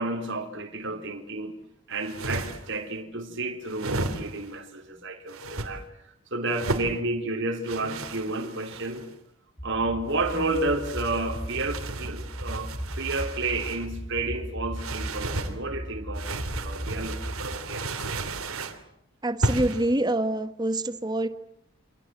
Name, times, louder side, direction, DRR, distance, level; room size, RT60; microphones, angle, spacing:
voice 1, 0.0-1.5 1.9-5.8 6.3-9.1 9.6-18.3, right 2 dB, 55° right, 3.6 m, -31 dB
sound 1, 1.9-2.8 3.7-4.5 5.3-5.7 6.5-6.9 7.6-9.1 10.1-13.9 14.7-15.5 16.1-18.8 19.4-19.9, right 2 dB, 70° right, 3.3 m, -34 dB
sound 2, 9.6-17.6, equal, 10° left, 2.2 m, -36 dB
voice 2, 19.2-21.3, right 1 dB, 20° right, 1.5 m, -26 dB
29.0 x 25.5 x 7.7 m
head